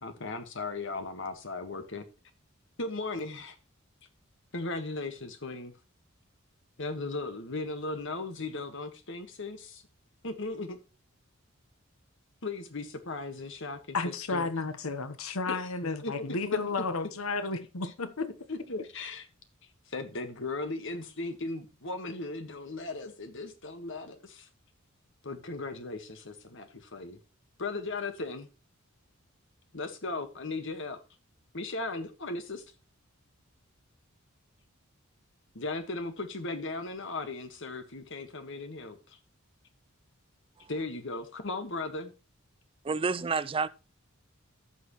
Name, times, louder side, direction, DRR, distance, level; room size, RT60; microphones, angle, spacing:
voice 1, 0.0-2.1 2.8-3.5 4.5-5.7 6.8-9.8 10.2-10.8 12.4-14.0 14.3-14.4 15.5-15.6 16.0-16.3 18.5-19.2 19.9-24.5 25.2-27.2 27.6-28.5 29.7-31.0 31.5-32.6 35.5-39.2 40.7-42.1, left 3 dB, 65° left, 1.6 m, -37 dB
voice 2, 13.9-18.3, left 3 dB, 85° left, 1.1 m, -32 dB
voice 3, 42.8-43.7, right 4 dB, 25° right, 0.4 m, -29 dB
15.5 x 6.3 x 3.1 m
head